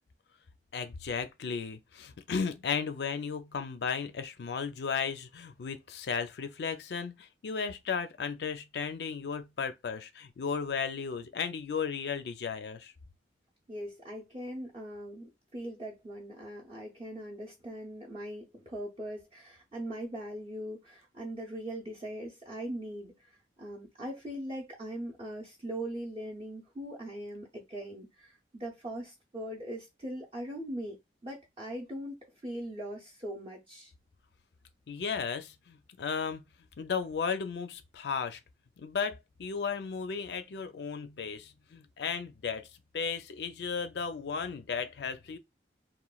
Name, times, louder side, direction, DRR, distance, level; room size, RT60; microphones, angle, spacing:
voice 1, 0.7-12.9 34.9-36.4 36.8-38.4 38.8-42.7 42.9-45.4, left 6 dB, 70° left, 0.4 m, -35 dB
voice 2, 13.7-31.0 31.2-33.9, right 1 dB, 30° right, 0.5 m, -40 dB
3.0 x 2.1 x 2.3 m
head